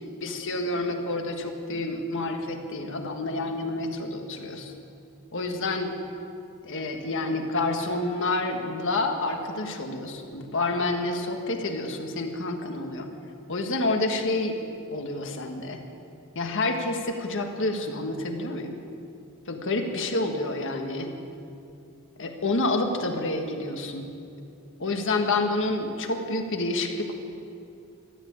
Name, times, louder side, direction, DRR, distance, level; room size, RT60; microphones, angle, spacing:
voice 1, 0.2-4.7 5.3-5.9 6.6-13.1 13.5-14.6 14.9-15.8 16.3-18.8 19.5-21.1 22.2-24.1 24.8-27.1, left 2 dB, 60° left, 4 dB, 1.6 m, -28 dB
14.0 x 11.0 x 8.6 m, 2.6 s
head